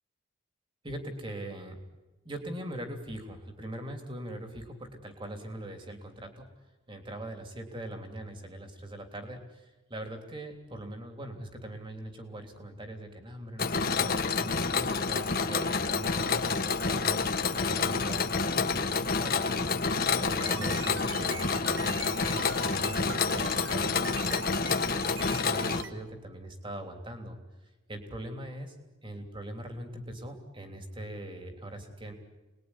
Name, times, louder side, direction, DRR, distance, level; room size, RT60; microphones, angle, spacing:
voice 1, 0.8-1.8 2.2-6.5 6.9-19.7 20.2-24.7 25.0-27.4 27.9-28.7 29.0-32.1, right 1 dB, 25° right, 5 dB, 3.3 m, -41 dB
Mechanisms, 13.6-25.8, left 4 dB, 50° left, 1.5 m, -28 dB
sound 1, 20.4-25.9, right 6 dB, 65° right, 1.2 m, -42 dB
28.5 x 21.0 x 10.0 m, 1.2 s
head